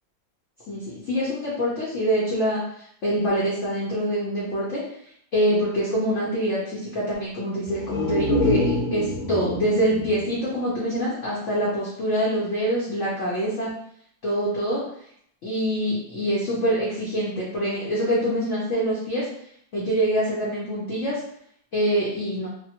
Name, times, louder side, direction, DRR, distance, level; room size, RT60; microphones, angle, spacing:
voice 1, 0.7-2.6 3.0-4.8 5.3-13.7 14.2-14.8 15.4-19.2 19.7-21.2 21.7-22.5, equal, 65° left, -7 dB, 0.7 m, -25 dB
sound 1, 7.6-11.4 11.7-11.8, left 2 dB, 90° left, 1.5 m, -27 dB
3.4 x 2.0 x 2.8 m, 0.68 s
omnidirectional pair, 2.2 m